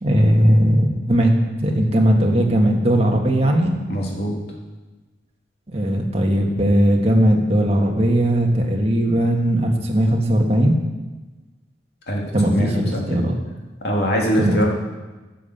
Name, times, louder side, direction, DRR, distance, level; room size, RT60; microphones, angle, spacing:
voice 1, 0.0-1.3 1.6-3.7 5.7-10.8 12.3-13.4 14.4-14.6, right 1 dB, 35° right, 1 dB, 1.5 m, -18 dB
voice 2, 3.9-4.4 12.1-13.3 13.8-14.7, equal, 60° left, -2 dB, 2.5 m, -23 dB
11.0 x 7.4 x 6.7 m, 1.2 s
head